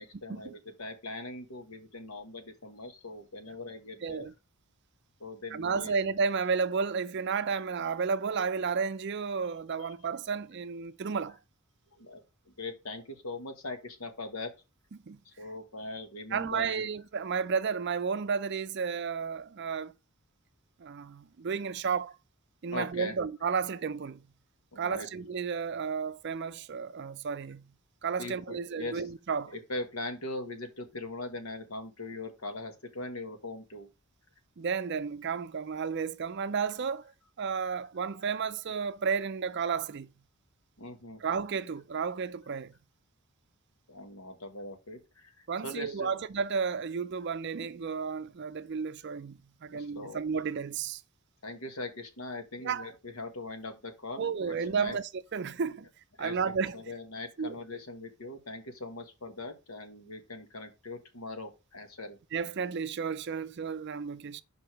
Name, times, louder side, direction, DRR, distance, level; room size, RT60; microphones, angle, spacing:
voice 1, 0.0-4.3 5.2-5.9 9.8-9.9 11.9-14.5 15.2-16.9 22.7-23.2 24.7-25.1 28.2-29.0 29.5-33.9 40.8-41.2 43.9-45.4 45.6-46.1 49.7-50.2 51.4-55.0 56.2-62.2, left 2 dB, 80° left, 1.4 m, -41 dB
voice 2, 4.0-4.3 5.5-11.4 14.9-15.2 16.3-19.9 20.8-22.2 22.6-24.3 24.8-27.7 28.0-29.5 34.6-37.1 37.4-40.1 41.2-42.8 45.5-51.0 52.6-52.9 54.2-55.9 56.2-56.8 57.4-57.6 62.3-64.4, right 5 dB, 50° right, 0.4 m, -32 dB
5.2 x 4.9 x 4.6 m
head